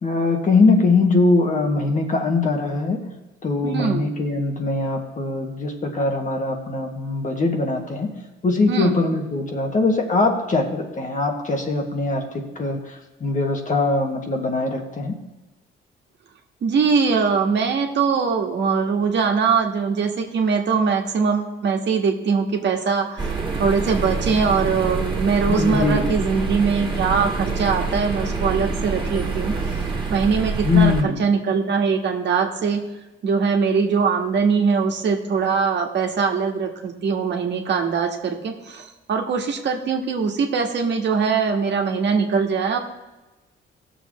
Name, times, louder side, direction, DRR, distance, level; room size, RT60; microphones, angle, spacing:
voice 1, 0.0-3.0 3.4-8.1 8.4-12.2 12.6-12.8 13.2-15.1 25.5-26.2 30.6-31.2, left 3 dB, 40° left, 2 dB, 1.8 m, -21 dB
voice 2, 3.6-4.1 8.7-9.0 16.6-29.5 30.1-32.8 33.2-42.8, right 5 dB, 60° right, 2 dB, 1.6 m, -22 dB
sound 1, 23.2-31.0, right 4 dB, 25° right, 2.1 m, -26 dB
17.0 x 7.0 x 3.1 m, 1.1 s
cardioid pair, 90°, 20 cm